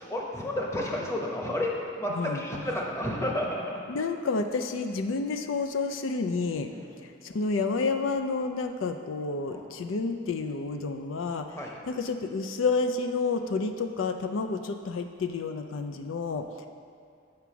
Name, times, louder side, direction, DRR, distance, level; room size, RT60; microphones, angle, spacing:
voice 1, 0.0-1.7 2.0-3.6 6.7-6.9 9.5-9.7 11.6-11.8, left 1 dB, 15° left, -2 dB, 0.9 m, -31 dB
voice 2, 2.1-2.4 3.9-6.7 7.0-16.7, left 4 dB, 90° left, 7 dB, 0.4 m, -30 dB
8.5 x 4.6 x 6.0 m, 2.4 s
head